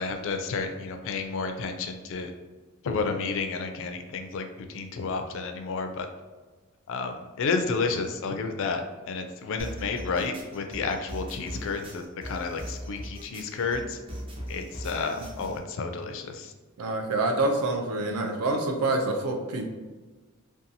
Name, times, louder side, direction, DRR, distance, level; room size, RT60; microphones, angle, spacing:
voice 1, 0.0-2.3 2.8-6.1 6.9-14.0 14.5-16.5, left 4 dB, 60° left, 5 dB, 0.3 m, -31 dB
sound 1, 9.6-15.6, equal, 25° right, 0.4 m, -39 dB
voice 2, 16.8-19.7, right 2 dB, 80° right, 3 dB, 0.5 m, -26 dB
2.6 x 2.3 x 2.6 m, 1.3 s
head